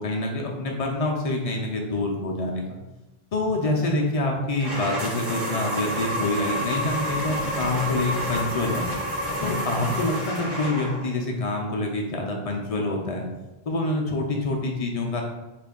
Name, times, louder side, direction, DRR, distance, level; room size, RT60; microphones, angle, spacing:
voice 1, 0.0-2.8 3.3-8.9 9.4-13.2 13.7-15.2, left 2 dB, 45° left, 0 dB, 0.5 m, -26 dB
sound 1, 4.6-11.1, equal, 60° right, 1.8 m, -29 dB
3.2 x 2.5 x 3.6 m, 1.0 s
omnidirectional pair, 1.1 m